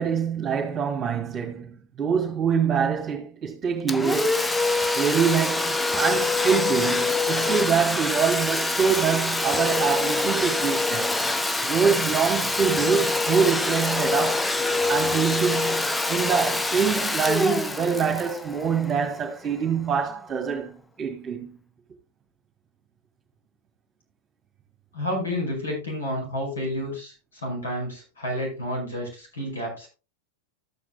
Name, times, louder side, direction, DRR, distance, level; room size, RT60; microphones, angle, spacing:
voice 1, 0.0-4.4 4.9-11.2 11.6-14.5 14.9-21.5, right 6 dB, 25° right, 2.0 m, -25 dB
Domestic sounds home sounds, 3.9-19.4, left 2 dB, 5° left, 0.5 m, -25 dB
voice 2, 24.9-29.9, left 1 dB, 70° left, 5.3 m, -30 dB
14.0 x 8.7 x 2.3 m
figure-of-eight pair, 90°, 0 cm